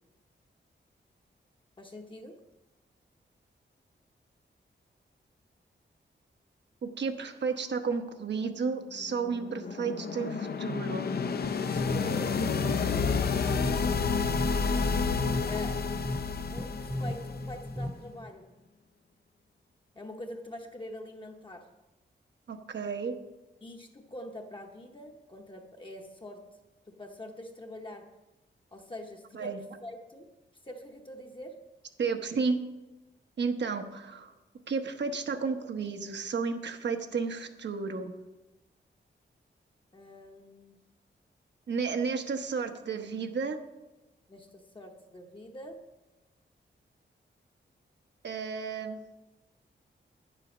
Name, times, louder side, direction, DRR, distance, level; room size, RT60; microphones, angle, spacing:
voice 1, 1.8-2.4 11.6-12.4 15.5-15.9 16.5-18.6 19.9-21.7 23.6-26.5 26.9-28.1 28.7-30.3 30.6-31.6 39.9-40.8 44.3-45.8, left 1 dB, 25° left, 2 dB, 0.9 m, -44 dB
voice 2, 6.8-11.2 22.5-23.1 29.3-29.6 32.0-32.6 33.4-34.3 34.7-38.1 41.7-43.6 48.2-49.0, right 5 dB, 65° right, 6 dB, 1.0 m, -32 dB
sound 1, 9.0-17.9, left 5 dB, 55° left, 0.6 m, -30 dB
sound 2, 11.4-18.3, left 1 dB, 5° right, 0.4 m, -37 dB
10.5 x 7.6 x 6.1 m, 1.0 s
wide cardioid pair, 160°, 19 cm